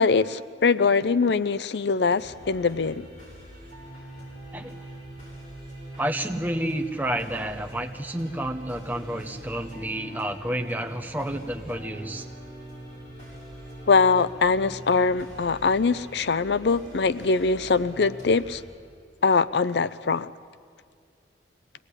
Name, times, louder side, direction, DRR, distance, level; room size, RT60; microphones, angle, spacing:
voice 1, 0.0-3.1 13.9-18.6 19.2-20.3, left 4 dB, 70° left, 0.5 m, -22 dB
sound 1, 2.2-18.7, right 1 dB, 40° left, 7.8 m, -43 dB
voice 2, 6.0-12.3, right 1 dB, 10° right, 1.1 m, -30 dB
24.0 x 18.0 x 9.8 m
head